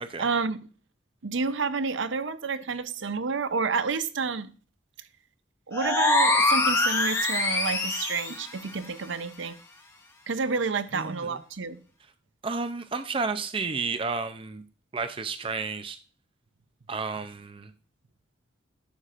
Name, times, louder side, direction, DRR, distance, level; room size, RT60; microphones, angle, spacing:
voice 1, 0.2-0.6 1.2-4.5 5.7-9.6 10.3-11.8, right 4 dB, 80° right, 0.6 m, -29 dB
sound 1, 5.7-8.4, left 2 dB, 15° left, 1.0 m, -24 dB
voice 2, 10.9-11.4 12.4-14.6 14.9-16.0 16.9-17.7, right 4 dB, 30° right, 0.5 m, -31 dB
11.5 x 6.6 x 2.5 m
head